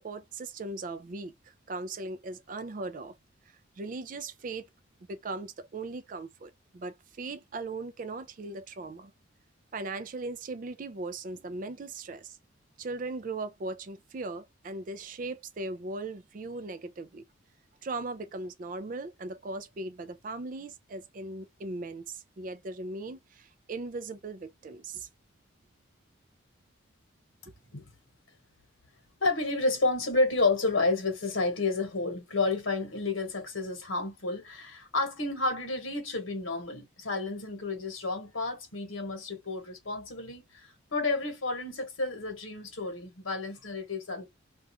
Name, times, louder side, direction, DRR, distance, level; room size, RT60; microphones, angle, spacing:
voice 1, 0.0-1.3 1.7-3.1 3.8-4.7 5.1-9.1 9.7-12.4 12.8-17.2 17.8-25.1 27.5-27.6, right 3 dB, 40° right, 0.4 m, -38 dB
voice 2, 29.2-44.2, left 3 dB, 80° left, 1.1 m, -30 dB
2.4 x 2.3 x 2.8 m
head